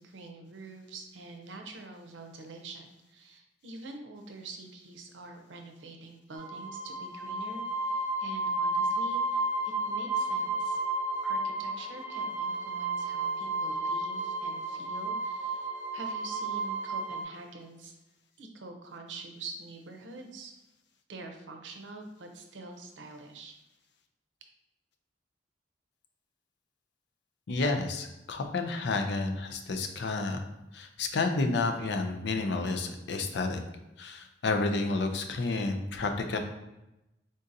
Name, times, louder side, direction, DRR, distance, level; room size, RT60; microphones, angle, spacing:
voice 1, 0.0-9.5 9.9-10.8 11.2-17.9 18.4-20.5 21.1-23.6, right 3 dB, 85° right, 4 dB, 0.6 m, -46 dB
sound 1, 6.4-17.2, right 2 dB, 15° right, 0.5 m, -32 dB
voice 2, 27.5-30.5 30.7-33.6 34.0-36.4, left 3 dB, 65° left, 5 dB, 0.5 m, -30 dB
3.8 x 3.8 x 2.6 m, 0.93 s
head